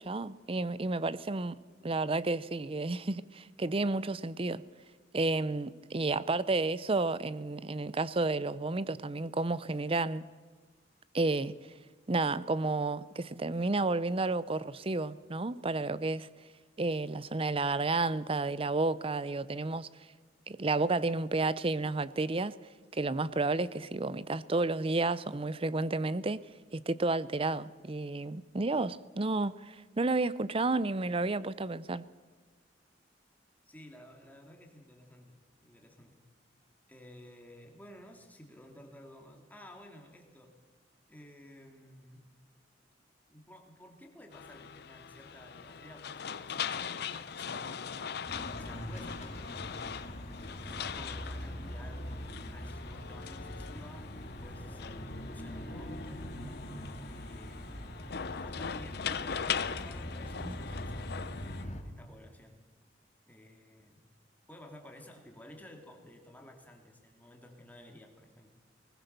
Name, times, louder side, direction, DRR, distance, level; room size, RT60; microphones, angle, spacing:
voice 1, 0.0-1.6 1.8-4.6 5.1-10.2 11.1-11.6 12.1-16.3 16.8-19.9 20.5-22.6 22.9-26.4 26.7-32.0 60.4-60.6, right 3 dB, 30° right, 0.6 m, -31 dB
voice 2, 33.7-36.2 36.9-40.5 41.1-42.2 43.3-46.8 47.1-48.3 48.6-49.6 50.3-52.1 52.5-56.2 57.1-57.8 58.4-62.6 63.3-64.0 64.5-68.5, left 1 dB, 10° left, 2.6 m, -53 dB
sound 1, 44.3-61.6, left 7 dB, 60° left, 0.7 m, -41 dB
sound 2, 48.3-61.8, equal, 40° left, 2.5 m, -42 dB
20.0 x 19.5 x 6.8 m
head